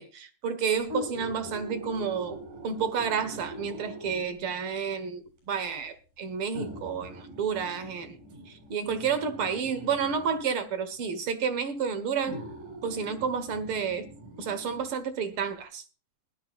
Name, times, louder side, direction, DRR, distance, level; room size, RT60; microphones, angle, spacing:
voice 1, 0.0-8.2 8.5-12.4 12.8-14.1 14.4-15.8, right 6 dB, 55° right, 1.8 m, -30 dB
sound 1, 0.8-4.5 5.4-5.5 6.5-10.5 11.5-11.6 12.2-14.9 15.3-15.4, equal, 75° right, 8.6 m, -42 dB
20.0 x 12.5 x 2.4 m
omnidirectional pair, 3.6 m